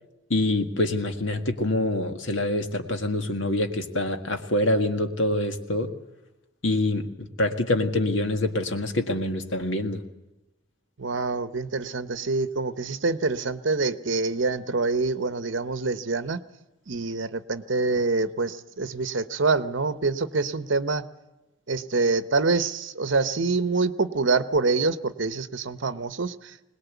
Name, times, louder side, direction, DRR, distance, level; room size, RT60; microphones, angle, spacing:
voice 1, 0.3-5.9 6.6-10.0, left 1 dB, 70° left, 6 dB, 1.8 m, -25 dB
voice 2, 11.0-16.4 16.9-21.1 21.7-26.6, right 3 dB, 65° right, 12 dB, 0.9 m, -26 dB
21.5 x 19.5 x 8.2 m, 0.99 s
head